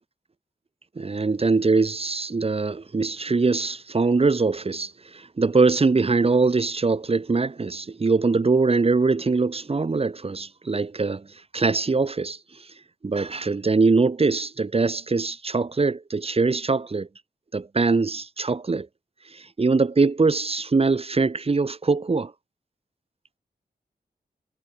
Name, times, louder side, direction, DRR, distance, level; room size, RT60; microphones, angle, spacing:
voice 1, 0.9-11.3 11.5-12.4 13.0-17.1 17.5-18.9 19.3-22.3, right 4 dB, 40° right, 1.6 m, -22 dB
wide cardioid pair, 85°, 16 cm